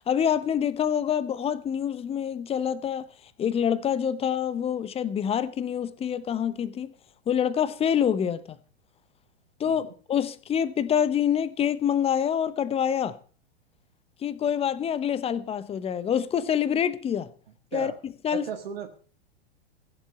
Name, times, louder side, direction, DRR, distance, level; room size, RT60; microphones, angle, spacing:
voice 1, 0.1-3.1 3.4-6.9 7.3-8.6 9.6-13.1 14.2-17.3 17.7-18.5, left 8 dB, 20° left, 0.9 m, -26 dB
voice 2, 18.3-18.9, right 8 dB, 65° right, 1.7 m, -35 dB
16.0 x 7.5 x 6.7 m
hypercardioid pair, 105°, 31 cm